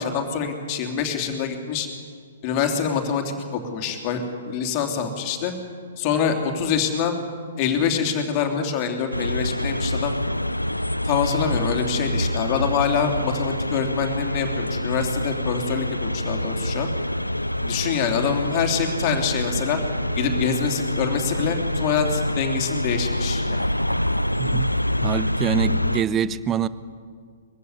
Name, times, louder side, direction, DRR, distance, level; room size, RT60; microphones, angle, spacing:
voice 1, 0.0-1.9 2.4-5.5 6.0-7.2 7.6-10.1 11.0-16.9 17.6-19.8 20.2-23.7, left 7 dB, 35° left, 4 dB, 3.2 m, -25 dB
sound 1, 9.1-26.0, left 1 dB, 90° left, 0.6 m, -26 dB
voice 2, 24.4-24.7 25.0-26.7, right 8 dB, 20° right, 16 dB, 0.8 m, -25 dB
23.0 x 15.5 x 9.8 m, 2.1 s
figure-of-eight pair, 120°, 0 cm